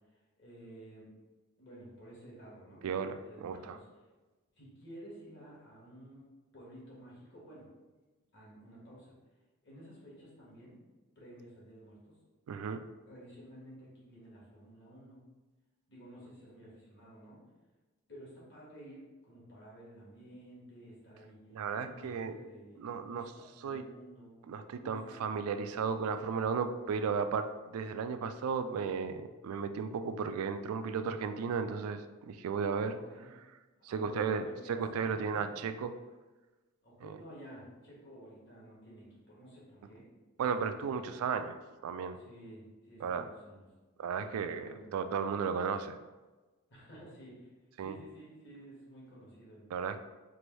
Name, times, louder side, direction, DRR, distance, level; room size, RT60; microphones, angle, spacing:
voice 1, 0.4-1.1 1.6-3.8 4.6-7.7 8.3-9.1 9.6-10.8 11.1-12.2 13.1-15.3 15.9-17.4 18.1-21.4 21.7-24.3 24.8-25.3 26.0-26.5 32.7-33.3 33.8-34.8 35.1-35.5 36.8-40.2 40.4-40.9 42.2-43.7 44.5-44.8 46.7-47.5 47.8-50.0, right 1 dB, 55° left, -6 dB, 1.4 m, -52 dB
voice 2, 2.8-3.8 12.5-12.8 21.5-22.4 22.8-23.3 23.6-23.8 24.5-33.0 33.8-35.9 37.0-37.2 40.4-41.6 41.8-42.2 43.0-43.3 44.0-46.0 47.8-47.9 49.7-50.0, right 6 dB, 85° right, 10 dB, 0.3 m, -34 dB
4.6 x 2.6 x 3.1 m, 1.2 s
head